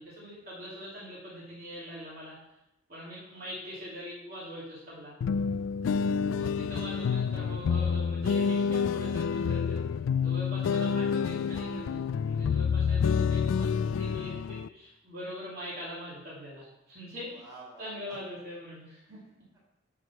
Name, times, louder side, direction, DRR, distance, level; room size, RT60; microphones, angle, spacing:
voice 1, 0.0-2.4 2.9-5.1 6.3-9.8 10.1-17.3 17.8-19.2, equal, 50° right, -8 dB, 2.9 m, -42 dB
sound 1, 5.2-14.7, left 6 dB, 75° left, 0.3 m, -28 dB
voice 2, 17.3-18.6 19.1-19.6, right 2 dB, 20° right, -5 dB, 4.0 m, -52 dB
10.5 x 4.9 x 5.7 m, 0.89 s
head